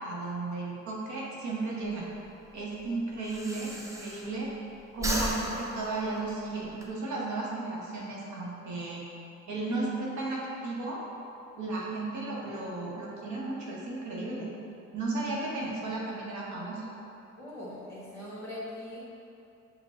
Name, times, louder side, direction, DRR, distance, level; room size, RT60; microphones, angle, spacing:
voice 1, 0.0-2.1 2.5-4.5 4.9-9.0 9.5-11.0 11.6-14.5 14.9-16.8, right 2 dB, 70° right, -4 dB, 0.9 m, -34 dB
Breathing, 1.8-4.6 4.9-6.9, right 1 dB, 10° right, 0.5 m, -36 dB
voice 2, 17.4-19.0, left 1 dB, 10° left, -9 dB, 1.3 m, -41 dB
5.3 x 2.3 x 4.1 m, 2.7 s
cardioid pair, 90°, 30 cm